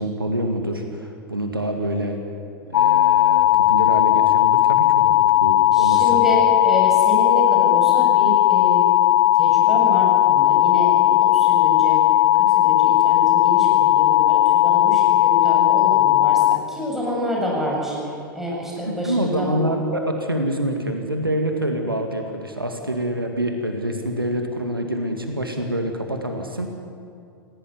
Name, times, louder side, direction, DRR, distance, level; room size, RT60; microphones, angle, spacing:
voice 1, 0.0-2.2 2.7-6.2 18.9-26.7, right 1 dB, 85° right, 4 dB, 2.1 m, -26 dB
sound 1, 2.7-16.6, left 15 dB, 55° left, 0.6 m, -16 dB
voice 2, 5.7-8.9 9.3-12.0 12.3-19.6, equal, 5° right, -4 dB, 7.7 m, -27 dB
20.0 x 17.0 x 9.7 m, 2.5 s
figure-of-eight pair, 95°, 12 cm